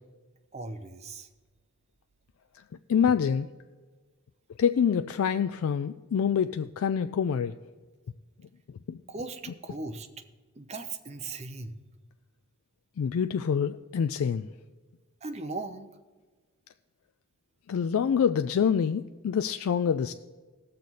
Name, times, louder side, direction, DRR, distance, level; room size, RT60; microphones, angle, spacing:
voice 1, 0.5-1.3 9.1-10.1 10.6-11.8 15.2-15.9, right 3 dB, 30° right, 7 dB, 0.7 m, -38 dB
voice 2, 2.9-3.5 4.6-7.5 8.9-9.0 13.0-14.5 17.7-20.1, left 7 dB, 75° left, 10 dB, 0.3 m, -26 dB
18.0 x 6.6 x 4.1 m, 1.4 s
head